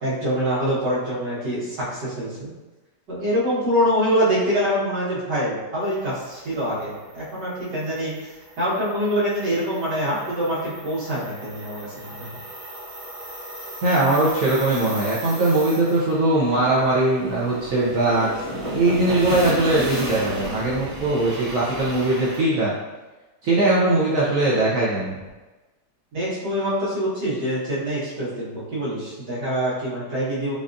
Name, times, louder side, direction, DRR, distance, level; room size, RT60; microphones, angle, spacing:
voice 1, 0.0-2.5 3.1-8.1 8.6-12.3 26.1-30.5, equal, 80° right, -9 dB, 2.1 m, -25 dB
sound 1, 5.9-22.4, equal, 40° right, 0.4 m, -35 dB
voice 2, 13.8-22.7 23.4-25.1, right 2 dB, 60° right, -7 dB, 0.9 m, -20 dB
5.1 x 2.4 x 2.6 m, 1.2 s
omnidirectional pair, 1.9 m